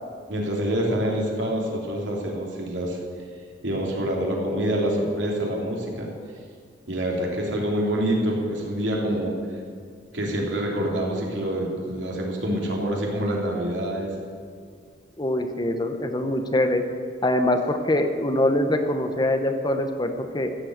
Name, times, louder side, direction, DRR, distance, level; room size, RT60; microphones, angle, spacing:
voice 1, 0.3-3.0 3.6-6.1 6.9-9.3 10.1-14.1, right 1 dB, 85° right, -2 dB, 3.1 m, -26 dB
voice 2, 15.2-16.8 17.2-20.5, left 1 dB, 25° left, 7 dB, 0.9 m, -23 dB
15.0 x 7.6 x 8.0 m, 2.1 s
head